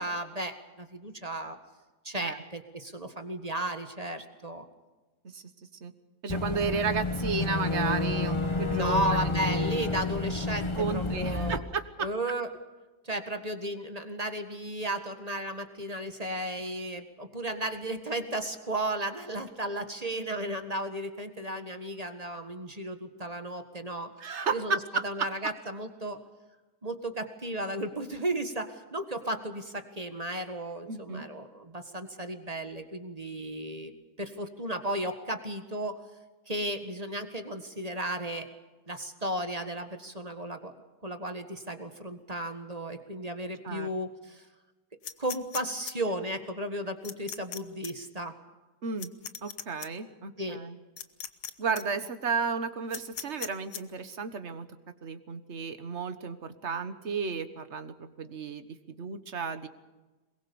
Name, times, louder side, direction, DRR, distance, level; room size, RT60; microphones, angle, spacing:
voice 1, 0.0-1.6 2.0-4.7 8.7-11.6 12.0-12.5 13.0-24.1 24.5-24.8 25.0-26.2 26.8-33.9 34.2-36.0 36.5-38.5 38.9-40.7 41.0-44.5 45.2-48.4 50.4-50.6, right 1 dB, 25° right, 7 dB, 1.7 m, -34 dB
voice 2, 6.2-9.5 10.8-12.1 24.2-25.5 30.9-31.3 43.6-43.9 48.8-49.1 49.4-50.8 51.6-54.7 55.0-59.7, right 5 dB, 45° right, 10 dB, 1.5 m, -33 dB
Boat Water vehicle / Engine, 6.3-11.6, left 2 dB, 20° left, 0.9 m, -30 dB
sound 1, 45.0-45.9 47.0-47.6 47.8-47.9 49.0-49.9 51.0-51.5 51.8-51.9 52.9-53.8, left 9 dB, 75° left, 1.6 m, -38 dB
23.0 x 21.5 x 7.0 m, 1.2 s
omnidirectional pair, 1.8 m